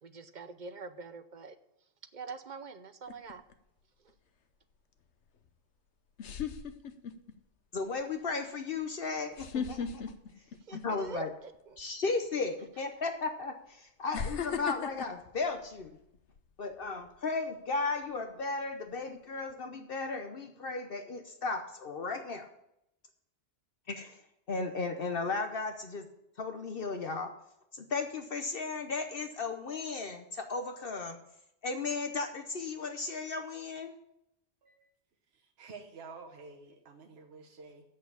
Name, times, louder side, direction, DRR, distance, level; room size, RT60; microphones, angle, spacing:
voice 1, 0.0-1.6 2.1-3.4 4.0-4.1 10.6-11.8, right 4 dB, 50° right, 11 dB, 0.7 m, -44 dB
sound 1, 3.1-3.5 5.5-5.6 6.2-7.3 7.8-8.0 9.3-11.2 11.5-11.8 12.8-12.9 14.1-16.4 16.8-17.1, left 7 dB, 85° left, 1.1 m, -37 dB
voice 2, 7.7-10.0 10.3-10.4 10.7-11.3 11.8-16.0 16.6-22.5 23.9-24.2 24.5-26.1 26.4-27.3 27.7-31.2 31.6-33.9, left 4 dB, 60° left, 6 dB, 1.0 m, -35 dB
voice 3, 34.6-34.9 35.3-37.8, right 4 dB, 65° right, 2 dB, 1.2 m, -50 dB
8.0 x 6.6 x 8.3 m, 0.80 s
omnidirectional pair, 1.1 m